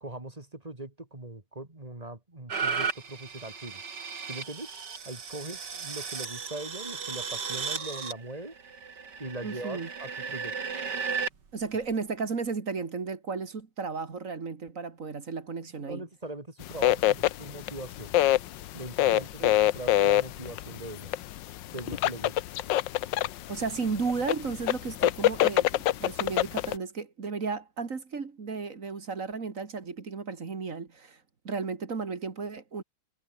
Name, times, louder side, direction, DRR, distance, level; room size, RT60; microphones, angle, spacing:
voice 1, 0.0-3.8 4.2-4.7 5.0-8.5 9.2-10.7 15.9-18.1 18.7-21.1 21.7-22.4, right 2 dB, 20° right, 2.7 m, -41 dB
sound 1, 2.5-11.3 11.9-12.0, right 5 dB, 55° right, 2.9 m, -35 dB
voice 2, 9.4-9.9 11.5-16.0 19.1-19.5 23.5-32.8, right 4 dB, 40° right, 2.2 m, -34 dB
sound 2, 16.6-26.7, left 14 dB, 70° left, 1.3 m, -26 dB
omnidirectional pair, 2.2 m